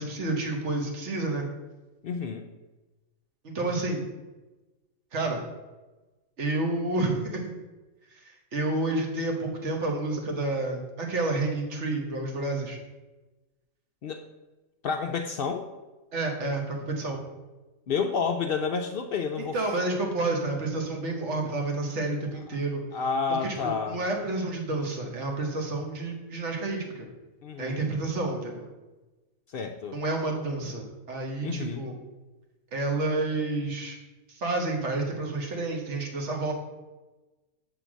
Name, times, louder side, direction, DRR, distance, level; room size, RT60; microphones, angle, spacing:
voice 1, 0.0-1.4 3.4-4.1 5.1-5.4 6.4-7.5 8.5-12.8 16.1-17.2 19.5-22.8 23.4-27.1 27.6-28.7 29.9-32.0 32.7-34.0 34.4-36.5, right 2 dB, 60° right, 1 dB, 1.5 m, -29 dB
voice 2, 2.0-2.5 14.0-14.2 14.8-15.7 17.9-19.6 20.5-20.6 22.9-24.0 27.4-27.9 29.5-30.0 31.4-31.9, left 5 dB, 65° left, 5 dB, 0.5 m, -30 dB
6.7 x 3.8 x 6.1 m, 1.1 s
omnidirectional pair, 1.4 m